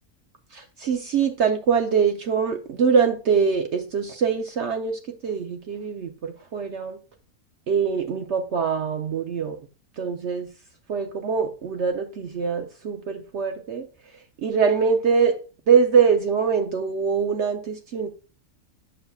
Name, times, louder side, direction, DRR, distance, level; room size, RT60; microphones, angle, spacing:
voice 1, 0.5-7.0 7.7-9.6 10.0-10.5 10.9-13.9 14.4-15.4 15.7-18.1, right 6 dB, 60° right, 0.8 m, -23 dB
8.8 x 6.7 x 2.3 m
omnidirectional pair, 1.5 m